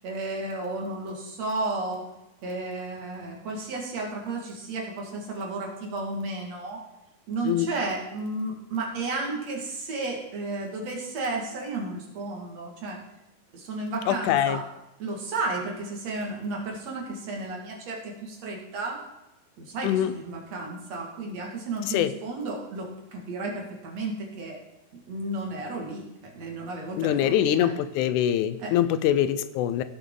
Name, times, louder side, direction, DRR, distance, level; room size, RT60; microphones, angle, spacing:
voice 1, 0.0-2.1 2.4-6.8 7.3-13.0 13.5-14.7 15.0-19.0 19.6-24.6 25.1-27.8 28.6-28.8, right 2 dB, 60° right, 0 dB, 3.1 m, -33 dB
voice 2, 14.1-14.6 19.8-20.1 21.9-22.1 27.0-29.8, left 11 dB, 80° left, 13 dB, 2.0 m, -24 dB
16.0 x 7.0 x 3.8 m, 0.97 s
omnidirectional pair, 3.6 m